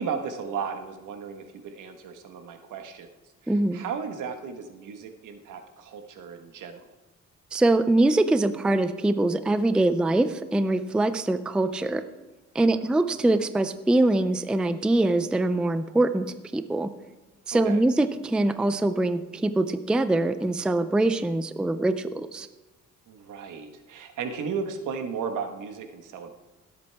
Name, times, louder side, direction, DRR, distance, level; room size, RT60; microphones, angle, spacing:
voice 1, 0.0-3.1 3.4-6.9 12.6-12.9 17.5-17.8 23.1-26.3, right 6 dB, 75° right, 6 dB, 1.4 m, -35 dB
voice 2, 3.5-3.8 7.5-12.0 12.5-16.9 17.5-22.5, right 2 dB, 5° right, 11 dB, 0.4 m, -23 dB
17.0 x 8.0 x 3.4 m, 1.2 s
cardioid pair, 130°, 31 cm